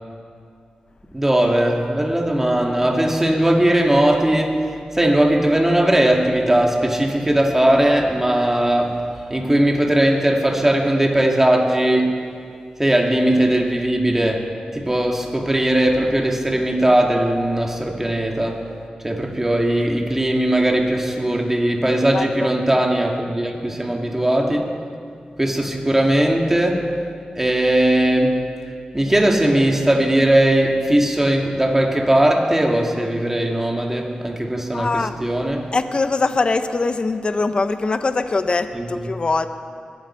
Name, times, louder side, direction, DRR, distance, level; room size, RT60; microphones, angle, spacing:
voice 1, 1.1-4.7 4.9-9.1 9.3-12.1 12.8-14.5 14.7-18.6 19.0-24.7 25.4-26.9 27.4-28.4 28.9-35.7 38.7-38.9, right 1 dB, 15° right, 1 dB, 2.1 m, -19 dB
voice 2, 22.1-22.5 34.7-35.2 35.7-39.5, left 3 dB, 40° left, 9 dB, 0.7 m, -22 dB
21.0 x 14.5 x 4.5 m, 2.3 s
wide cardioid pair, 80°, 3 cm